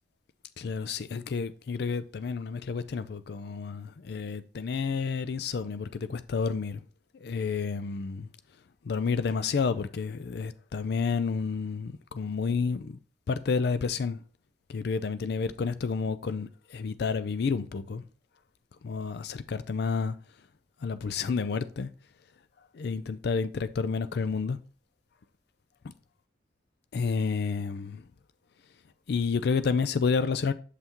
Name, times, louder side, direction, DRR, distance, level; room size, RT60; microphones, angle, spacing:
voice 1, 0.6-6.8 7.1-8.3 8.8-13.0 13.3-14.2 14.7-18.0 18.8-20.2 20.8-21.9 22.6-24.6 26.9-28.0 29.1-30.5, left 5 dB, 60° left, 0.4 m, -30 dB
8.1 x 5.6 x 3.0 m
head